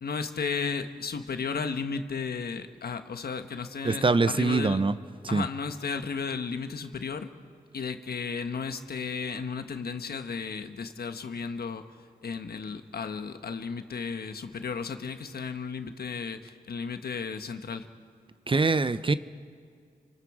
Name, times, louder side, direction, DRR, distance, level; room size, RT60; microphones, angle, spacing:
voice 1, 0.0-4.8 5.3-7.3 7.7-11.8 12.2-17.9, left 5 dB, 80° left, 8 dB, 1.2 m, -34 dB
voice 2, 3.8-4.9 5.3-5.4 18.5-19.1, right 3 dB, 35° right, 14 dB, 0.7 m, -23 dB
27.5 x 25.5 x 4.9 m, 2.2 s
cardioid pair, 70°, 16 cm